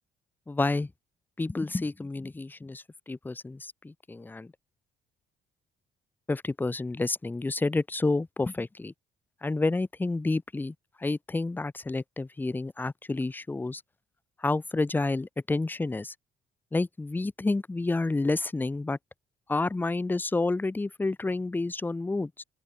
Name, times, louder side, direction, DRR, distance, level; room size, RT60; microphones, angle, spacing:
voice 1, 0.5-0.9 1.4-4.5 6.3-8.9 9.4-10.7 11.0-13.8 14.4-16.1 16.7-19.0 19.5-22.4, left 3 dB, 10° left, 0.4 m, -29 dB
open air
cardioid pair, 90°, 20 cm